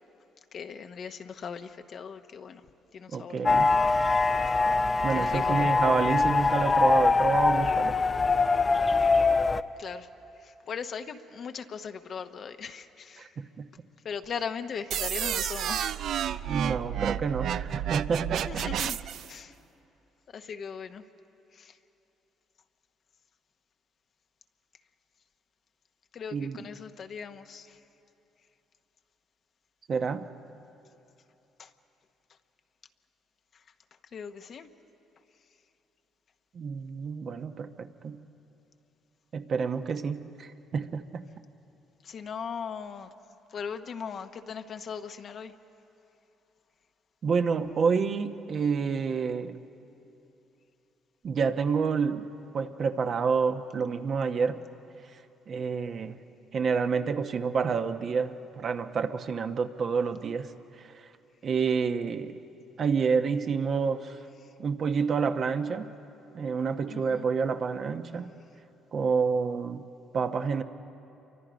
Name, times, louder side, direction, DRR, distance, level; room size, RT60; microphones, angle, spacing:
voice 1, 0.5-2.6 2.9-3.8 4.5-4.6 5.1-5.9 9.8-10.1 10.4-13.3 14.0-15.9 18.5-19.0 19.3-19.5 20.3-21.0 21.5-21.8 26.1-27.8 31.6-31.7 34.1-34.7 42.0-43.1 43.5-45.5 66.9-67.3, left 6 dB, 55° left, 7 dB, 1.0 m, -39 dB
voice 2, 3.1-3.8 5.0-8.0 13.2-13.3 13.6-13.7 16.5-18.7 26.3-26.7 29.9-30.3 36.5-38.3 39.3-41.2 47.2-49.6 51.2-52.3 52.5-54.6 55.5-56.2 56.5-60.5 60.8-61.1 61.4-62.4 62.8-64.2 64.6-65.9 66.3-68.3 68.9-69.8 70.1-70.6, right 5 dB, 50° right, 7 dB, 1.0 m, -28 dB
sound 1, 3.5-9.6, left 3 dB, 30° left, 0.7 m, -23 dB
sound 2, 14.9-19.3, right 10 dB, 70° right, 0.4 m, -31 dB
28.5 x 24.0 x 5.2 m, 2.9 s
supercardioid pair, 75°, 0 cm